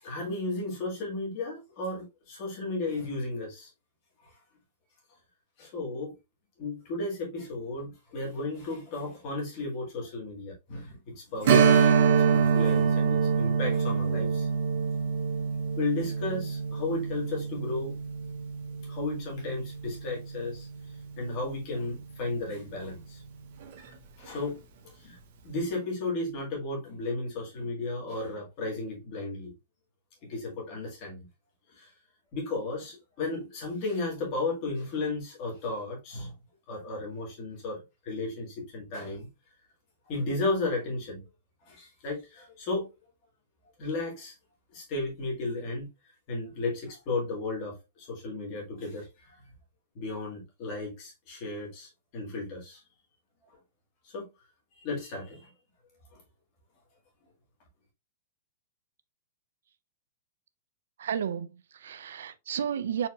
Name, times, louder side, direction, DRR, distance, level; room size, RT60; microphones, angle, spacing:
voice 1, 0.0-3.7 5.6-6.2 6.6-11.9 12.2-14.5 15.8-17.9 18.9-20.7 21.2-23.2 24.2-24.6 25.0-25.2 25.4-29.5 30.2-31.3 31.7-31.9 32.3-36.3 36.7-39.3 40.1-41.2 41.7-42.9 43.8-44.3 44.7-45.9 46.3-49.4 50.0-52.8 54.0-54.3 54.8-55.5 56.1-56.2, left 2 dB, 30° left, 1.8 m, -34 dB
Strum, 11.4-20.6 21.0-21.1 23.6-23.8 24.2-24.3, right 6 dB, 45° right, 0.7 m, -25 dB
voice 2, 61.0-63.1, right 8 dB, 75° right, 0.4 m, -32 dB
4.3 x 3.9 x 2.3 m
supercardioid pair, 180°, 0 cm